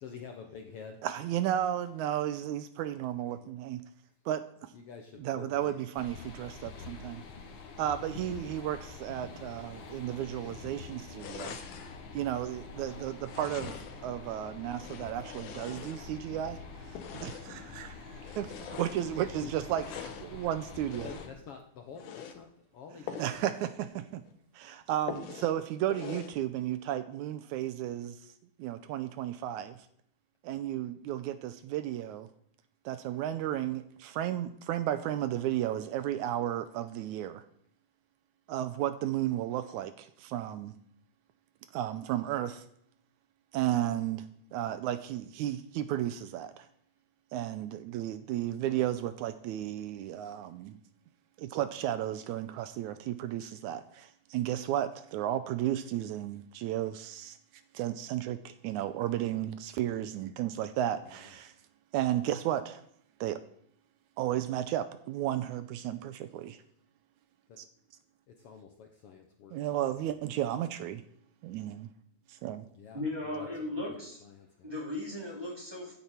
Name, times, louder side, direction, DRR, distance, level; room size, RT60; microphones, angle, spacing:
voice 1, 0.0-1.0 4.7-6.3 6.5-6.7 19.4-20.2 21.0-23.3 48.7-48.9 61.0-61.3 67.5-67.6 68.3-69.5 69.9-70.0 72.7-74.7, left 6 dB, 65° left, 3 dB, 1.5 m, -49 dB
voice 2, 1.0-3.8 4.3-4.7 5.2-7.2 7.8-11.6 12.1-21.1 23.2-24.2 24.5-28.2 28.6-29.9 30.4-32.3 32.9-37.4 38.5-40.8 41.7-42.6 43.5-46.7 47.3-50.8 51.4-57.4 57.7-61.5 61.9-62.8 63.2-63.4 64.2-66.6 67.6-67.7 69.5-71.0 71.4-71.9 72.3-72.7, right 12 dB, 80° right, 12 dB, 2.0 m, -33 dB
sound 1, 5.9-21.3, left 4 dB, 50° left, 1.7 m, -46 dB
sound 2, 11.2-12.0 13.2-14.1 14.7-16.3 16.9-17.6 18.2-19.1 19.7-20.3 20.9-21.4 21.9-22.4 23.1-23.4 23.8-23.9 24.3-24.4 25.1-25.6 25.9-26.4, left 8 dB, 80° left, 2.6 m, -43 dB
voice 3, 72.9-74.2 74.6-76.0, left 2 dB, 10° right, -2 dB, 3.1 m, -37 dB
15.5 x 8.9 x 4.4 m, 0.67 s
omnidirectional pair, 3.6 m